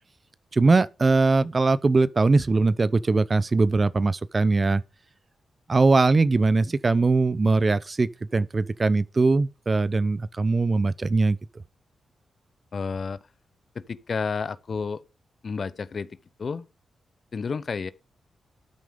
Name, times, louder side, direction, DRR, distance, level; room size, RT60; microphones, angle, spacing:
voice 1, 0.5-4.8 5.7-11.4, right 3 dB, 40° right, 0.8 m, -21 dB
voice 2, 12.7-13.2 13.7-15.0 15.4-16.7 17.3-17.9, left 5 dB, 55° left, 0.9 m, -31 dB
13.0 x 9.2 x 3.8 m
supercardioid pair, 50°, 0 cm